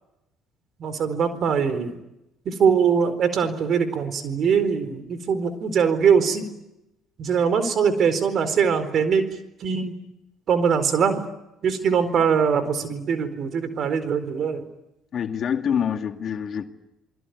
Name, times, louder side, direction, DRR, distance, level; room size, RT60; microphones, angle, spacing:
voice 1, 0.8-2.0 2.4-6.5 7.2-9.2 9.6-9.9 10.5-11.2 11.6-14.6, right 6 dB, 55° right, 11 dB, 4.3 m, -22 dB
voice 2, 15.1-16.6, left 8 dB, 50° left, 6 dB, 2.2 m, -26 dB
28.0 x 21.0 x 9.5 m, 0.92 s
supercardioid pair, 65°, 0 cm